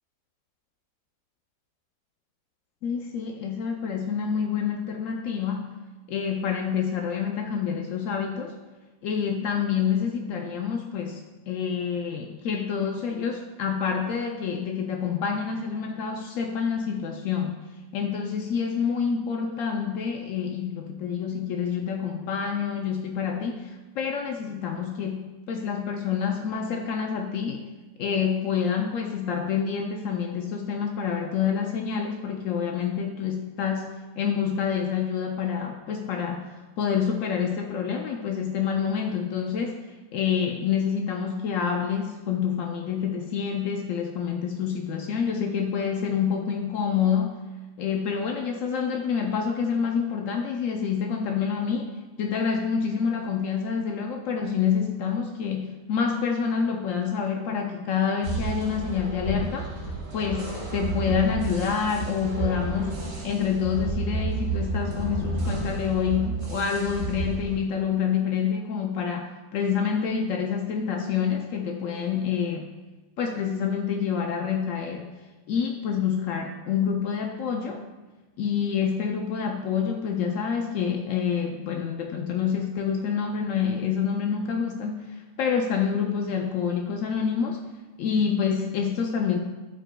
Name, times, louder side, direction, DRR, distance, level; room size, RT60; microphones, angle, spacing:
voice 1, 2.8-5.8 6.1-8.6 9.0-17.6 17.9-27.7 28.0-39.9 40.1-47.4 47.8-59.7 60.1-72.7 73.2-75.1 75.5-77.8 78.4-87.6 88.0-89.4, left 7 dB, 80° left, 3 dB, 0.7 m, -27 dB
sound 1, 58.2-67.6, right 3 dB, 70° right, 2.0 m, -31 dB
11.5 x 4.7 x 2.2 m, 1.2 s
omnidirectional pair, 1.9 m